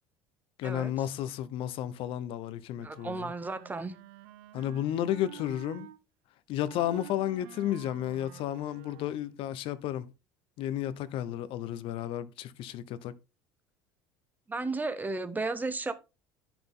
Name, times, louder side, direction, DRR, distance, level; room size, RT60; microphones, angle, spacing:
voice 1, 0.6-3.3 4.5-5.9 6.5-10.1 10.6-13.1, left 11 dB, 65° left, 0.8 m, -32 dB
voice 2, 2.8-4.0 14.5-15.9, right 3 dB, 15° right, 1.2 m, -34 dB
Wind instrument woodwind instrument, 2.8-6.0 6.7-9.4, right 17 dB, 80° right, 0.7 m, -50 dB
10.0 x 6.0 x 3.8 m
supercardioid pair, 90°, 10 cm